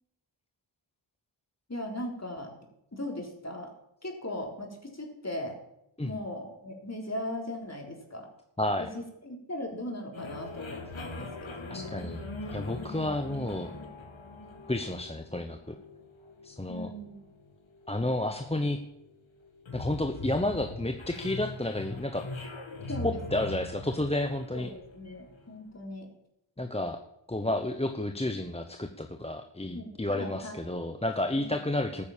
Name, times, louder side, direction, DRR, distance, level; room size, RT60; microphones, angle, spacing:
voice 1, 1.7-2.5 2.9-3.7 4.0-5.6 6.0-8.3 8.8-12.0 16.7-17.2 22.9-23.6 24.5-26.1 29.7-30.6, left 1 dB, 30° left, 1 dB, 4.1 m, -38 dB
voice 2, 8.6-8.9 11.7-12.2 12.5-13.7 14.7-15.8 16.4-16.9 17.9-18.8 19.7-22.3 23.0-24.7 26.6-27.0 27.3-32.0, left 1 dB, 10° left, 5 dB, 1.0 m, -31 dB
sound 1, 10.1-25.5, left 2 dB, 70° left, 2.0 m, -42 dB
13.5 x 9.6 x 7.4 m, 0.82 s
wide cardioid pair, 60°, 48 cm